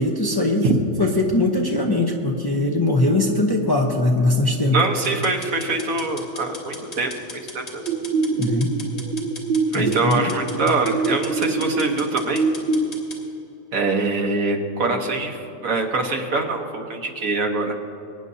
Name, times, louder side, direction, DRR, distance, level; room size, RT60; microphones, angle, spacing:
voice 1, 0.0-4.8 8.4-8.7 9.7-10.3, left 2 dB, 20° left, 0 dB, 0.7 m, -21 dB
voice 2, 4.7-7.1 7.5-7.9 9.7-12.4 13.7-17.8, right 3 dB, 80° right, 3 dB, 1.6 m, -24 dB
sound 1, 5.0-13.2, left 2 dB, 50° left, 2.1 m, -39 dB
sound 2, 7.9-12.9, right 4 dB, 50° right, 0.6 m, -25 dB
23.0 x 9.7 x 2.7 m, 2.7 s
omnidirectional pair, 1.4 m